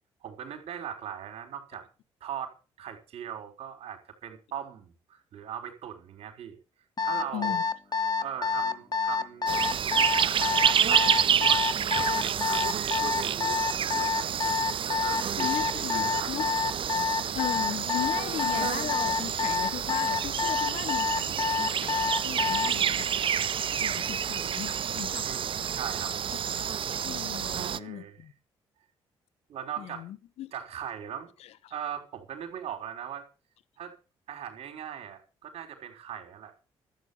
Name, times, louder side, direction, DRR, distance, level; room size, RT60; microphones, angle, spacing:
voice 1, 0.2-1.8 2.2-6.6 7.0-7.6 8.2-9.6 10.2-11.6 12.2-14.6 15.0-15.6 15.9-16.7 17.2-17.4 23.7-23.9 25.2-26.1 27.4-28.2 29.5-30.1 30.5-31.3 31.7-33.3 33.8-33.9 34.3-36.5, right 9 dB, 70° right, 4.1 m, -40 dB
Alarm, 7.0-22.8, left 5 dB, 40° left, 1.4 m, -28 dB
voice 2, 7.3-7.6 15.4-16.5 17.3-23.4 23.8-25.3 26.6-26.7 27.0-28.3 29.8-30.5 31.4-31.7, left 12 dB, 75° left, 1.0 m, -37 dB
sound 1, 9.5-27.8, right 8 dB, 55° right, 0.7 m, -29 dB
13.0 x 8.7 x 7.0 m
supercardioid pair, 65°, 11 cm